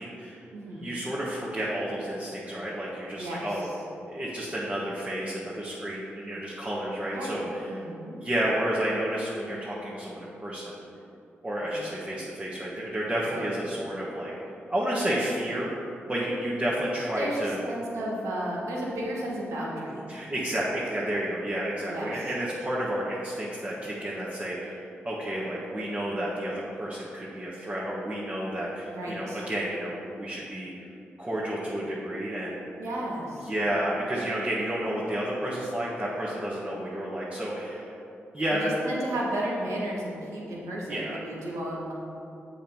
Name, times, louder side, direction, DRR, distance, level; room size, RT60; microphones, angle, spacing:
voice 1, 0.0-0.4 0.7-3.7 4.1-7.7 8.2-10.8 11.4-14.3 14.7-15.7 16.1-17.6 20.1-30.7 31.2-32.7 33.4-37.9 38.3-38.8 40.9-41.3, right 1 dB, 25° right, -7 dB, 1.6 m, -31 dB
voice 2, 0.5-1.0 3.2-3.8 7.1-8.2 11.6-11.8 13.3-13.4 17.2-20.1 21.9-22.3 28.9-29.4 32.8-33.5 38.5-41.9, right 1 dB, 85° right, -3 dB, 1.5 m, -34 dB
7.2 x 4.6 x 5.5 m, 2.8 s
supercardioid pair, 45°, 5 cm